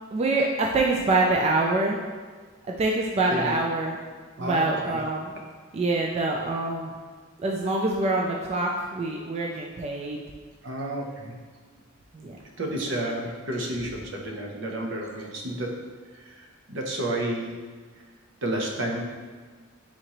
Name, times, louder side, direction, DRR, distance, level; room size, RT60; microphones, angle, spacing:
voice 1, 0.1-2.0 2.8-4.0 4.4-5.3 5.7-6.9 7.4-10.2 12.1-12.4, right 2 dB, 30° right, 0 dB, 0.3 m, -25 dB
voice 2, 4.4-5.0 10.6-11.3 12.6-15.7 16.1-17.5 18.4-19.0, right 1 dB, 65° right, 0 dB, 0.7 m, -31 dB
4.3 x 3.7 x 3.0 m, 1.5 s
head